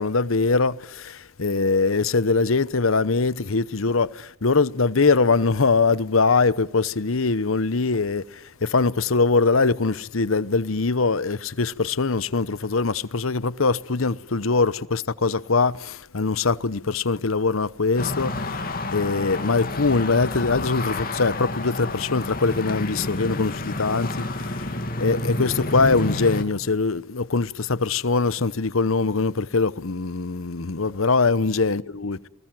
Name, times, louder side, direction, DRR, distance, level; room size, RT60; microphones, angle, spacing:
voice 1, 0.0-24.3 25.0-32.3, left 4 dB, 85° left, 0.9 m, -22 dB
sound 1, 18.0-26.4, left 2 dB, 45° left, 2.9 m, -29 dB
28.5 x 20.5 x 7.6 m
head